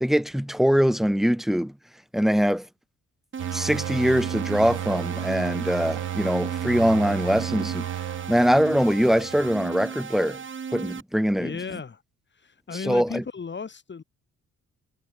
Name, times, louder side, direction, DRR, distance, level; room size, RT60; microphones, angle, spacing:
voice 1, 0.0-1.7 2.1-2.7 3.5-7.9 8.3-10.4 10.7-11.8 12.8-13.2, equal, ahead, 1.1 m, -23 dB
sound 1, 3.3-11.0, right 6 dB, 40° right, 3.2 m, -36 dB
sound 2, 3.4-9.8, right 13 dB, 75° right, 4.9 m, -33 dB
voice 2, 11.4-12.0 12.3-14.0, left 5 dB, 35° left, 7.7 m, -35 dB
cardioid pair, 90°, 30 cm